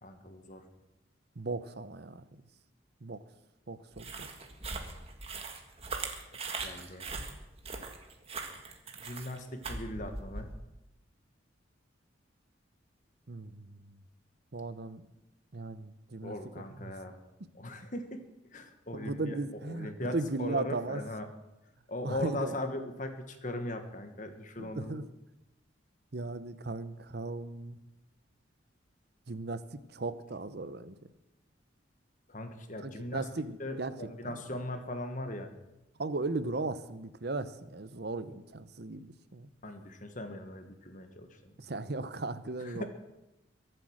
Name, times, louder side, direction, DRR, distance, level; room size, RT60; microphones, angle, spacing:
voice 1, 0.0-0.7 6.3-7.1 8.9-10.5 16.2-17.2 17.5-18.2 18.5-19.4 19.7-21.2 21.9-25.0 32.3-33.3 33.6-35.5 39.6-41.5 42.6-42.8, left 1 dB, 40° left, 7 dB, 1.6 m, -39 dB
voice 2, 1.4-2.4 3.0-3.2 3.7-4.3 13.3-14.0 14.5-15.1 15.5-16.3 16.7-16.9 18.9-21.0 22.0-22.6 24.6-25.1 26.1-27.8 29.3-31.0 32.8-34.6 36.0-39.5 41.6-42.8, right 3 dB, 55° right, 13 dB, 0.8 m, -37 dB
sound 1, 3.9-10.6, right 3 dB, 30° right, 1.7 m, -40 dB
23.0 x 7.8 x 6.4 m, 0.96 s
head